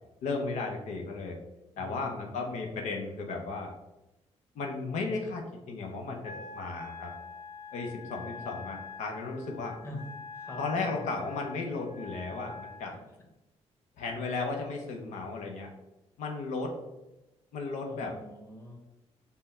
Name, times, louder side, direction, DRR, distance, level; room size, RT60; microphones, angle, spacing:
voice 1, 0.2-1.4 1.8-3.7 4.5-7.1 7.7-9.8 10.6-12.9 14.0-15.7 16.2-16.7 17.5-18.2, left 3 dB, 85° left, 1 dB, 0.7 m, -35 dB
voice 2, 1.7-2.8 9.8-10.0 10.3-11.1 12.9-13.0 17.9-18.8, left 1 dB, 20° left, -1 dB, 1.4 m, -45 dB
Wind instrument woodwind instrument, 6.2-12.8, left 4 dB, 55° left, 1.0 m, -45 dB
5.4 x 2.2 x 4.2 m, 0.98 s
cardioid pair, 85°, 12 cm